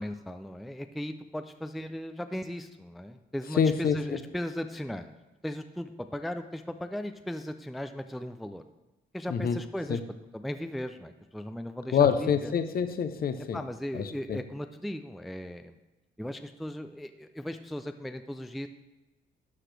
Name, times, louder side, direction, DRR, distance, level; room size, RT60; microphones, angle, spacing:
voice 1, 0.0-5.1 5.4-8.6 9.1-10.0 10.3-12.5 13.5-15.8 16.2-18.7, equal, ahead, 8 dB, 0.4 m, -37 dB
voice 2, 3.5-4.2 9.3-9.6 9.9-10.0 11.9-13.6 13.9-14.4, left 7 dB, 50° left, 10 dB, 0.7 m, -26 dB
12.0 x 5.0 x 3.3 m, 1.1 s
cardioid pair, 90°, 20 cm